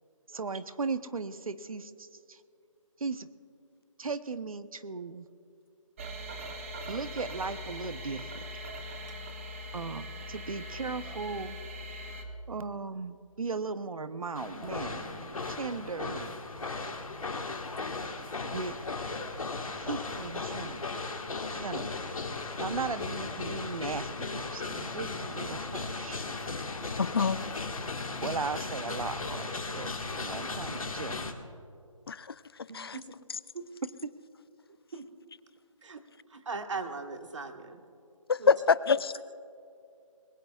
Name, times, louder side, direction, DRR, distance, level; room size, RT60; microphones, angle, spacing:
voice 1, 0.3-2.4 3.0-3.3 4.0-5.3 6.9-8.6 9.7-11.6 12.5-16.3 18.5-18.8 19.8-20.8 21.5-22.0 22.6-26.2 28.2-29.9 30.2-31.2, right 4 dB, 90° right, 12 dB, 0.9 m, -37 dB
sound 1, 6.0-12.2, equal, 25° right, 1.1 m, -41 dB
sound 2, 14.3-31.3, left 3 dB, 80° left, 1.7 m, -36 dB
voice 2, 26.9-27.4 32.1-32.3 32.7-33.0 38.3-39.1, left 5 dB, 45° left, 18 dB, 0.4 m, -25 dB
voice 3, 32.7-33.0 33.5-33.7 34.9-35.0 35.8-36.0 36.3-37.8 38.4-38.5, right 4 dB, 60° right, 6 dB, 1.5 m, -39 dB
21.0 x 20.5 x 2.4 m, 2.5 s
hypercardioid pair, 165°, 17 cm